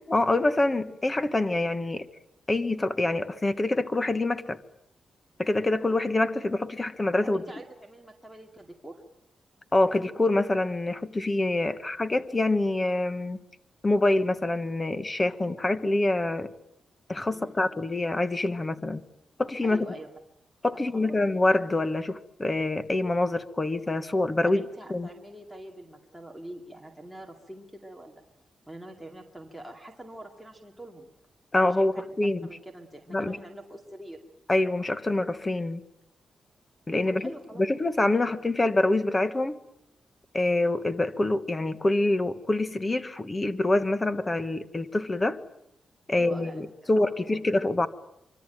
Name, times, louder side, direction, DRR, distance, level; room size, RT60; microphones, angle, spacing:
voice 1, 0.1-2.1 2.5-4.6 5.4-7.4 9.7-13.4 13.8-16.5 17.1-19.0 19.4-19.9 20.6-24.6 24.9-25.1 31.5-32.5 33.1-33.4 34.5-35.8 36.9-37.3 37.6-39.6 40.3-45.4 46.1-47.9, left 2 dB, 20° left, 1.3 m, -26 dB
voice 2, 7.2-9.0 17.3-17.6 19.6-20.1 20.9-21.1 24.4-28.2 28.7-31.1 31.7-32.0 32.4-34.2 37.2-37.7 38.2-38.3 46.1-47.4, right 1 dB, ahead, 2.3 m, -44 dB
25.0 x 24.5 x 9.1 m
wide cardioid pair, 170°, 0 cm